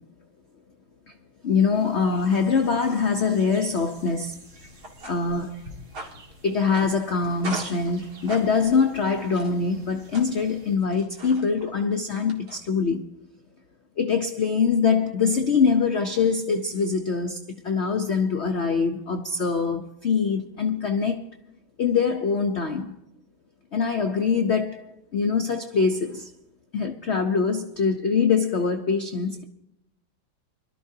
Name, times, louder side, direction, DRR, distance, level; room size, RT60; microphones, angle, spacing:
voice 1, 1.4-4.3 5.0-5.6 6.4-13.0 14.0-17.4 17.6-21.2 21.8-22.9 23.7-26.3 26.7-29.4, left 5 dB, 80° left, 0.6 m, -23 dB
sound 1, 1.7-10.8, equal, 80° right, 3.8 m, -52 dB
sound 2, 4.4-12.9, right 2 dB, 55° right, 2.4 m, -42 dB
24.0 x 12.5 x 2.7 m
omnidirectional pair, 2.2 m